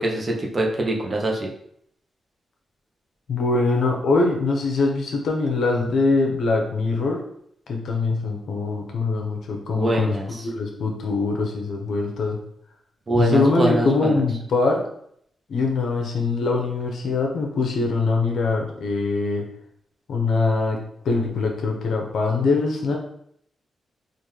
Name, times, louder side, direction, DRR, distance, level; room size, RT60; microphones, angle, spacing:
voice 1, 0.0-1.5 9.7-10.4 13.1-14.1, right 2 dB, 35° right, 0 dB, 0.8 m, -24 dB
voice 2, 3.3-7.2 7.7-10.2 10.4-12.4 13.2-14.8 15.5-19.4 20.1-20.8 21.0-23.0, left 3 dB, 75° left, 1 dB, 0.7 m, -23 dB
3.7 x 2.6 x 3.1 m, 0.70 s
cardioid pair, 95°, 0 cm